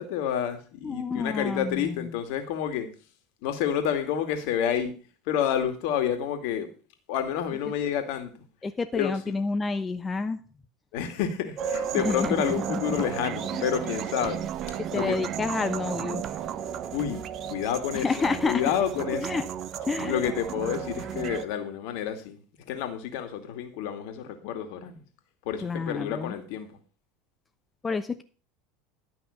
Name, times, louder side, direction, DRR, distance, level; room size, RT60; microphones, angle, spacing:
voice 1, 0.0-2.9 3.4-5.0 5.3-6.7 7.1-8.3 8.9-9.1 10.9-14.4 14.9-15.2 16.9-17.2 17.5-19.3 20.0-22.4 22.7-25.0 25.5-26.8, left 9 dB, 60° left, 7 dB, 2.3 m, -29 dB
voice 2, 0.8-2.1 8.6-10.4 11.9-13.1 13.5-13.7 14.9-16.2 17.9-18.7 19.2-19.4 19.9-20.3 25.6-26.3 27.8-28.2, left 4 dB, 20° left, 9 dB, 0.9 m, -29 dB
sound 1, 11.6-21.4, right 8 dB, 45° right, 0.9 m, -33 dB
12.0 x 5.9 x 6.5 m, 0.37 s
hypercardioid pair, 80°, 0 cm